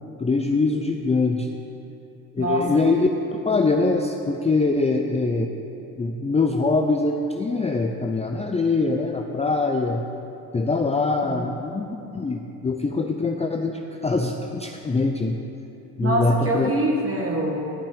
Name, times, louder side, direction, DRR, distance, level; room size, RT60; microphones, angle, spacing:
voice 1, 0.2-1.5 2.3-3.1 3.4-5.5 6.0-10.0 10.5-11.9 12.1-15.4 16.0-16.7, left 3 dB, 15° left, 3 dB, 0.5 m, -23 dB
voice 2, 2.4-2.9 11.2-11.5 16.0-17.6, right 1 dB, 30° right, 0 dB, 1.9 m, -25 dB
11.5 x 7.3 x 5.0 m, 2.9 s
cardioid pair, 80°, 43 cm